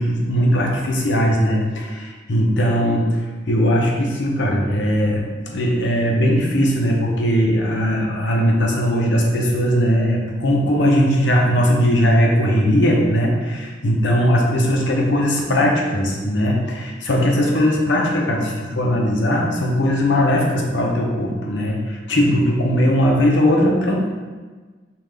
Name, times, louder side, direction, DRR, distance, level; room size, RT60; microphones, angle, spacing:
voice 1, 0.0-3.0 3.5-24.1, equal, 75° left, -1 dB, 0.8 m, -19 dB
5.5 x 2.5 x 3.3 m, 1.4 s
head